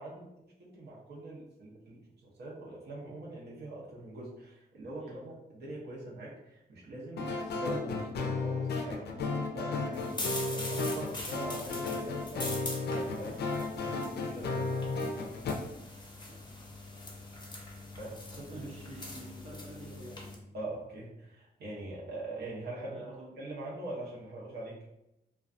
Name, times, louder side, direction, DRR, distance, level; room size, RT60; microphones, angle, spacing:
voice 1, 0.0-14.7 18.0-18.7 20.5-23.0 23.4-24.8, right 1 dB, 80° right, -5 dB, 0.7 m, -43 dB
sound 1, 7.2-15.5, left 3 dB, 85° left, 0.4 m, -34 dB
sound 2, 9.9-20.3, left 2 dB, 25° left, 0.5 m, -43 dB
voice 2, 18.5-20.5 22.8-23.3, right 1 dB, 40° right, -2 dB, 0.6 m, -48 dB
2.3 x 2.2 x 2.5 m, 0.86 s
wide cardioid pair, 100°, 17 cm